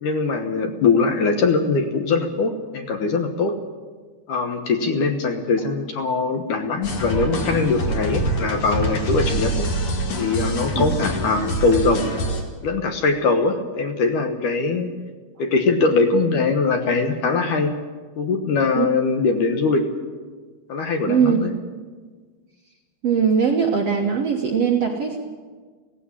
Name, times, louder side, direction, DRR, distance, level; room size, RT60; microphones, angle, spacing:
voice 1, 0.0-3.5 4.3-9.7 10.2-12.1 12.6-14.9 15.4-17.7 18.2-19.9 20.7-21.5, left 4 dB, 65° left, 6 dB, 2.4 m, -21 dB
sound 1, 6.8-12.4, right 1 dB, 40° left, 2.5 m, -25 dB
voice 2, 21.1-21.4 23.0-25.2, right 6 dB, 60° right, 1 dB, 1.7 m, -20 dB
16.5 x 16.0 x 9.8 m, 1.5 s
omnidirectional pair, 4.5 m